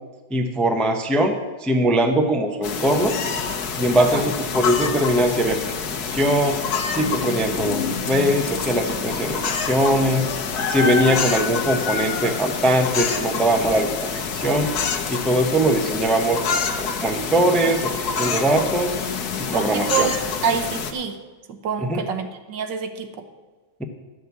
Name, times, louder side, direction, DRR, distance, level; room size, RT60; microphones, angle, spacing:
voice 1, 0.3-1.4 1.6-3.2 3.8-5.7 6.1-6.6 6.9-10.3 10.7-13.9 14.3-14.7 15.1-19.0 19.4-20.1 21.8-22.0, right 1 dB, ahead, 5 dB, 0.5 m, -21 dB
sound 1, 2.6-20.9, left 6 dB, 65° left, 1.5 m, -27 dB
voice 2, 19.5-21.2 21.5-23.2, right 6 dB, 85° right, 8 dB, 1.7 m, -26 dB
12.0 x 6.5 x 8.3 m, 1.3 s
omnidirectional pair, 1.9 m